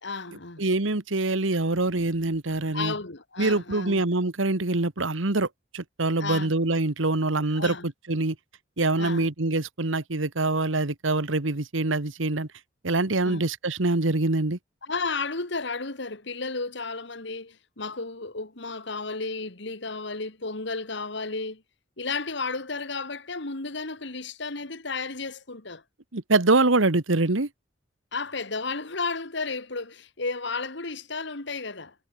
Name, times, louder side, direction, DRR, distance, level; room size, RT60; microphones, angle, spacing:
voice 1, 0.0-0.6 2.7-4.0 6.2-6.5 7.5-7.9 9.0-9.3 13.2-13.4 14.8-21.6 22.0-25.8 28.1-31.9, left 4 dB, 65° left, 2.2 m, -33 dB
voice 2, 0.6-2.9 3.4-5.5 5.7-8.3 8.8-12.5 12.8-14.6 26.1-27.5, right 2 dB, 85° right, 1.6 m, -24 dB
head